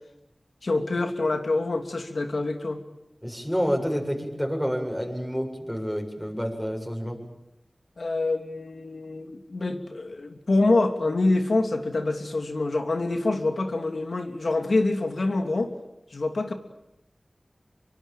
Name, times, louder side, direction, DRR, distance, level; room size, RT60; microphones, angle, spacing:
voice 1, 0.6-2.8 8.0-15.7 16.1-16.5, left 2 dB, 80° left, 6 dB, 2.9 m, -26 dB
voice 2, 3.2-7.2, equal, 5° left, 2 dB, 7.5 m, -28 dB
26.0 x 23.5 x 9.1 m, 0.89 s
wide cardioid pair, 40°, 0 cm